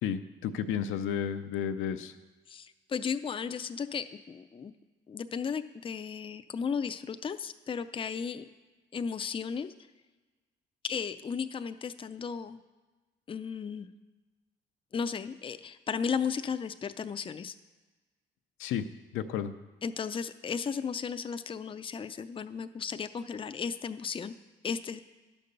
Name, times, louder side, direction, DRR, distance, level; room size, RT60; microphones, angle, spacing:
voice 1, 0.0-2.1 18.6-18.9 19.1-19.5, left 8 dB, 85° left, 8 dB, 0.6 m, -32 dB
voice 2, 2.5-4.7 5.1-8.5 8.9-9.7 10.8-12.6 13.3-13.9 14.9-17.5 19.8-24.3 24.6-25.0, left 6 dB, 25° left, 10 dB, 0.4 m, -35 dB
11.0 x 5.3 x 6.7 m, 1.3 s
cardioid pair, 90°, 20 cm